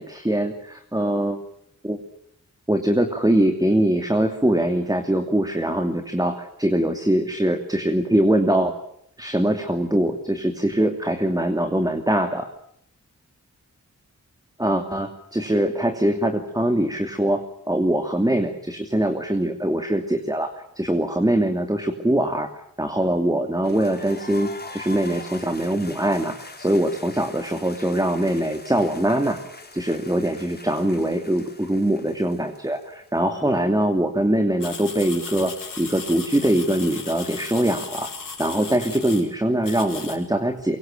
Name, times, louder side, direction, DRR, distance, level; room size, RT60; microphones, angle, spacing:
voice 1, 0.0-1.4 1.8-2.0 2.7-8.7 9.2-12.5 14.6-22.5 22.8-29.4 29.7-38.1 38.4-40.8, right 1 dB, 10° right, 6 dB, 2.8 m, -22 dB
sound 1, 23.6-33.4, left 3 dB, 30° left, 5.0 m, -43 dB
sound 2, 34.6-39.2 39.6-40.2, left 5 dB, 80° left, 6.9 m, -36 dB
24.5 x 23.5 x 9.1 m, 0.71 s
cardioid pair, 60°, 32 cm